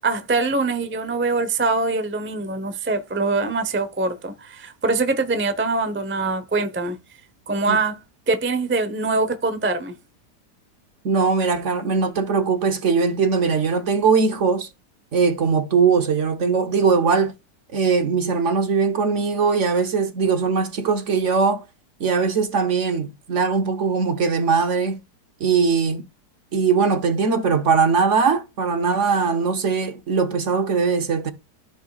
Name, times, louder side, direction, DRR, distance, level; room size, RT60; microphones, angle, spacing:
voice 1, 0.0-7.0 7.5-8.0 8.3-10.0, right 3 dB, 15° right, 0.3 m, -23 dB
voice 2, 11.0-14.7 15.1-17.3 17.7-21.6 22.0-25.0 25.4-26.1 26.5-31.3, right 5 dB, 50° right, 1.1 m, -20 dB
14.5 x 5.5 x 2.3 m
omnidirectional pair, 1.8 m